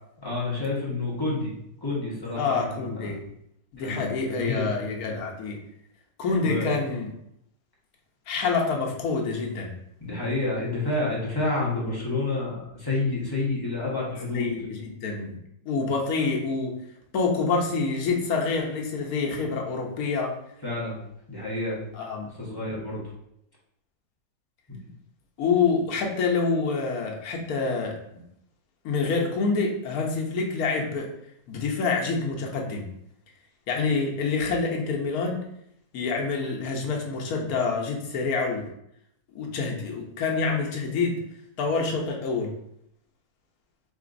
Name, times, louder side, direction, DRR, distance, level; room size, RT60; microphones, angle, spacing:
voice 1, 0.2-1.5 1.8-3.1 3.8-4.7 6.4-6.7 10.0-14.5 20.6-21.0 21.3-21.8 22.4-23.0 24.7-24.8, left 2 dB, 20° left, -6 dB, 0.9 m, -29 dB
voice 2, 2.4-3.2 3.7-5.6 6.2-7.1 8.3-9.7 14.3-15.3 15.7-16.7 17.1-20.3 21.9-22.3 25.4-28.0 28.8-31.1 31.5-32.9 33.7-35.4 35.9-38.7 39.3-41.2 41.6-42.5, left 4 dB, 70° left, 0 dB, 1.2 m, -27 dB
4.7 x 2.9 x 2.5 m, 0.75 s
omnidirectional pair, 1.6 m